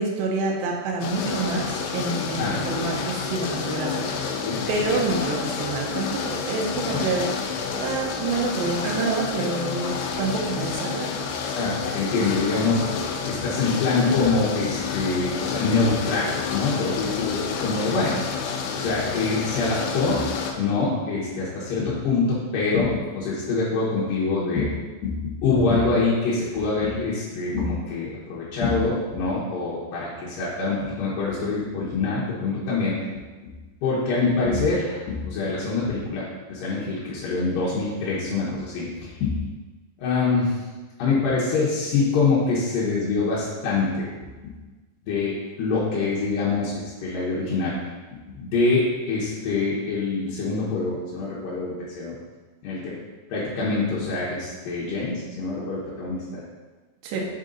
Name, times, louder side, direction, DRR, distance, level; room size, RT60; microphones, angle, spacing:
voice 1, 0.0-7.3 7.8-11.2 57.0-57.3, right 3 dB, 85° right, -1 dB, 2.0 m, -27 dB
sound 1, 1.0-20.5, left 6 dB, 90° left, 3.0 m, -29 dB
voice 2, 4.4-4.8 6.9-7.0 11.5-12.8 13.3-18.2 18.7-20.2 20.6-24.7 25.0-33.2 33.8-36.2 36.5-39.3 40.0-40.6 41.0-44.5 45.1-47.8 48.4-52.1 52.6-52.9 53.3-56.4, left 3 dB, 75° left, -8 dB, 2.0 m, -25 dB
6.9 x 3.9 x 3.9 m, 1.3 s
omnidirectional pair, 5.3 m